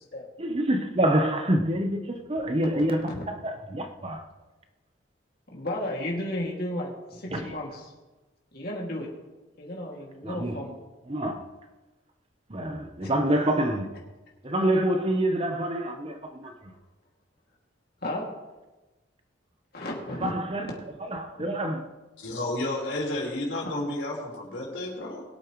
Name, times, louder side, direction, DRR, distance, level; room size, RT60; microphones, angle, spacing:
voice 1, 0.4-4.3 7.3-7.6 10.2-10.6 11.1-11.5 12.5-13.9 14.4-16.7 20.2-20.7 21.0-21.9, right 1 dB, 30° right, 0.9 m, -27 dB
voice 2, 5.5-7.7 8.5-9.1 9.6-10.8 13.0-13.1 16.4-16.5 18.0-18.3 19.7-20.3, left 1 dB, 55° left, 2.5 m, -33 dB
voice 3, 22.2-25.2, left 1 dB, 75° left, 4.4 m, -31 dB
22.0 x 8.6 x 3.2 m
head